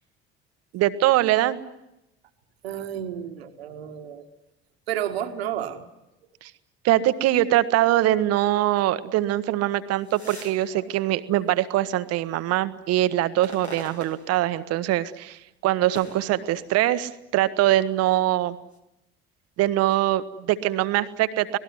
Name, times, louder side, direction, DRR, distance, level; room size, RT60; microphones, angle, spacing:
voice 1, 0.7-1.6 6.4-6.5 6.8-18.6 19.6-21.6, right 14 dB, 50° right, 12 dB, 1.3 m, -23 dB
voice 2, 2.6-4.3 4.9-5.9, right 10 dB, 70° right, 8 dB, 1.8 m, -31 dB
sound 1, 9.8-12.2 12.7-15.0 15.3-17.2 17.8-18.8, equal, 90° left, 1.7 m, -45 dB
26.0 x 18.5 x 9.6 m, 0.92 s
figure-of-eight pair, 55°, 32 cm